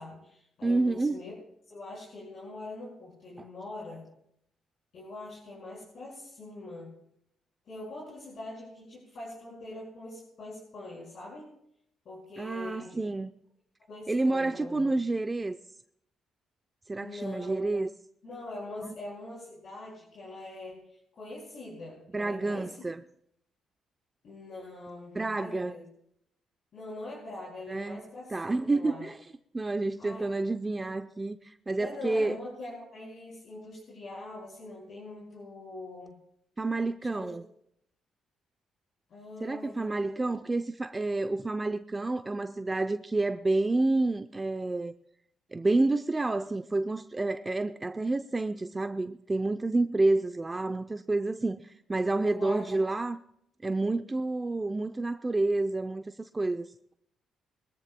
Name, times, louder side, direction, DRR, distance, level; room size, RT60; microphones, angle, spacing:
voice 1, 0.0-1.3 1.7-4.0 4.9-6.9 7.6-11.5 12.1-13.1 13.9-14.9 17.0-17.6 18.2-20.8 21.1-22.7 24.2-25.8 26.7-29.0 30.0-30.3 30.8-30.9 31.8-36.1 37.0-37.4 39.1-40.4 52.2-52.7, left 2 dB, 60° left, 5.6 m, -43 dB
voice 2, 0.6-1.2 3.4-3.5 12.4-13.3 14.1-15.6 16.9-17.9 22.1-23.0 25.2-25.7 27.7-29.2 29.5-32.4 36.6-37.4 39.4-44.9 45.5-53.2 53.6-56.7, right 2 dB, 20° right, 0.5 m, -29 dB
23.0 x 14.0 x 2.2 m
cardioid pair, 90°, 0 cm